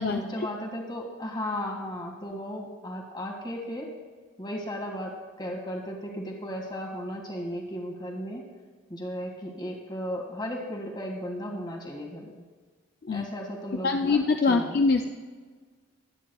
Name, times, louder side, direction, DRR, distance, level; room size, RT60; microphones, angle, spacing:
voice 1, 0.1-3.9 4.4-8.4 8.9-12.3 13.1-14.2 14.5-14.8, equal, 25° left, 0 dB, 2.0 m, -35 dB
voice 2, 13.8-15.1, left 4 dB, 55° left, 4 dB, 0.5 m, -23 dB
22.5 x 10.0 x 2.4 m, 1.5 s
head